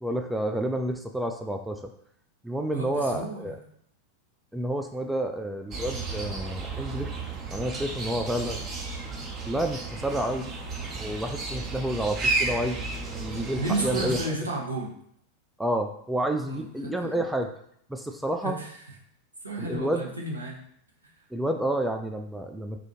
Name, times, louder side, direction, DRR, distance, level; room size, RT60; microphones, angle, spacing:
voice 1, 0.0-1.9 2.4-3.6 4.5-7.1 7.5-8.6 9.5-10.5 11.0-14.3 15.6-17.5 17.9-18.6 19.6-20.0 21.3-22.8, right 1 dB, 5° right, 4 dB, 0.3 m, -29 dB
voice 2, 2.7-3.6 13.6-14.9 16.5-17.2 18.4-18.9 19.4-20.6, right 2 dB, 80° right, -2 dB, 0.9 m, -32 dB
sound 1, 5.7-14.3, right 3 dB, 25° right, 0.7 m, -33 dB
4.1 x 2.6 x 2.9 m, 0.68 s
figure-of-eight pair, 90°, 0 cm